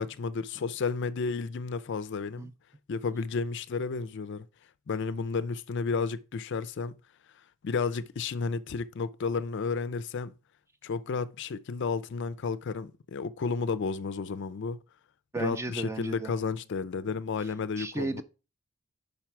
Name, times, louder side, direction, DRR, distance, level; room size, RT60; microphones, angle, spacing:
voice 1, 0.0-2.5 2.9-4.5 4.9-7.0 7.6-10.3 10.8-14.8 15.4-18.2, left 4 dB, 50° left, 0.4 m, -32 dB
voice 2, 15.3-16.3 17.4-17.5 17.8-18.2, right 2 dB, 10° right, 0.4 m, -34 dB
5.4 x 4.4 x 5.9 m
head